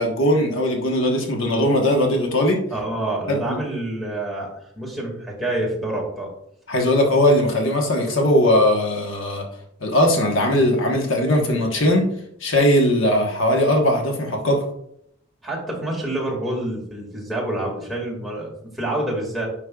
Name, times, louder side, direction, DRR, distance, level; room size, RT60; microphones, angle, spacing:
voice 1, 0.0-2.6 3.3-3.6 6.7-9.4 9.8-12.1 12.4-14.6, left 1 dB, 60° left, 1 dB, 1.2 m, -19 dB
voice 2, 2.7-4.5 4.8-6.3 15.4-19.5, right 1 dB, ahead, -4 dB, 2.0 m, -27 dB
9.8 x 5.3 x 2.4 m, 0.70 s
head